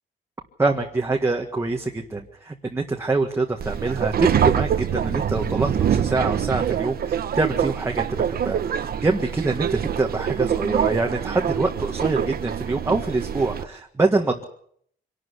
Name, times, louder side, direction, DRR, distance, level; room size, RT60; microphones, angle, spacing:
voice 1, 0.6-14.4, right 3 dB, 15° right, 1 dB, 1.7 m, -25 dB
Subway metro underground, 3.6-13.6, right 8 dB, 55° right, 1.2 m, -25 dB
25.5 x 12.5 x 9.8 m, 0.66 s
wide cardioid pair, 155°, 18 cm